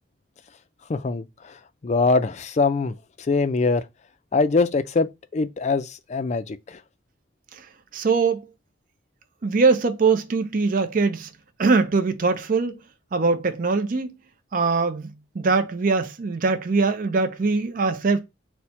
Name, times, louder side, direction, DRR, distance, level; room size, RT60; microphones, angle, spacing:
voice 1, 0.9-1.5 1.8-2.9 3.3-3.9 4.3-6.8, left 4 dB, 40° left, 0.4 m, -23 dB
voice 2, 7.9-8.4 9.4-11.3 11.6-12.8 13.1-14.1 14.5-18.2, right 4 dB, 45° right, 0.5 m, -22 dB
4.2 x 2.1 x 4.4 m
head